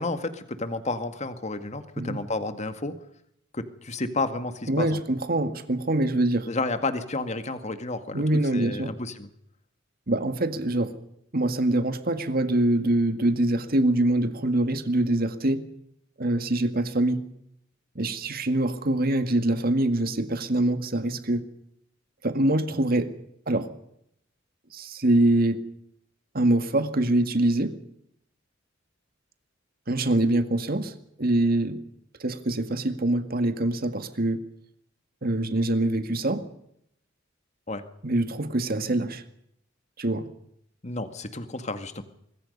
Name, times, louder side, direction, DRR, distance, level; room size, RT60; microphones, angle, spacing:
voice 1, 0.0-2.9 3.5-5.0 6.5-8.2 8.5-9.3 37.7-37.8 40.8-42.0, left 2 dB, 35° left, 9 dB, 1.9 m, -31 dB
voice 2, 4.7-6.5 8.1-8.9 10.1-10.9 11.3-15.7 16.2-17.2 18.0-21.5 22.2-23.1 23.5-23.7 24.7-25.6 26.3-27.7 29.9-30.9 31.2-31.8 32.2-34.4 35.2-36.4 38.0-39.2 40.0-40.3, right 1 dB, 50° right, 9 dB, 2.0 m, -24 dB
25.5 x 21.5 x 5.5 m, 0.74 s
head